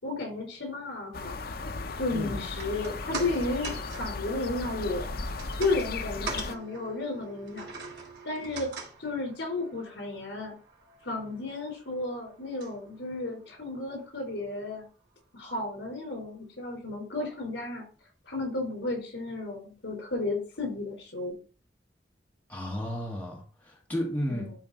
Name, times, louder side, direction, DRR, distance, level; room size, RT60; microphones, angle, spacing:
voice 1, 0.0-1.4 2.0-5.1 5.5-7.7 8.2-10.5 11.0-14.9 15.3-17.8 18.2-21.3 24.3-24.6, left 2 dB, 80° left, 1 dB, 4.5 m, -33 dB
sound 1, 1.1-6.6, left 3 dB, 60° left, 0.7 m, -36 dB
voice 2, 2.1-2.4 22.5-24.6, equal, 10° left, -3 dB, 2.4 m, -33 dB
sound 2, 2.4-14.8 15.1-15.2, right 4 dB, 70° right, 2.9 m, -44 dB
12.0 x 4.4 x 4.2 m, 0.38 s
head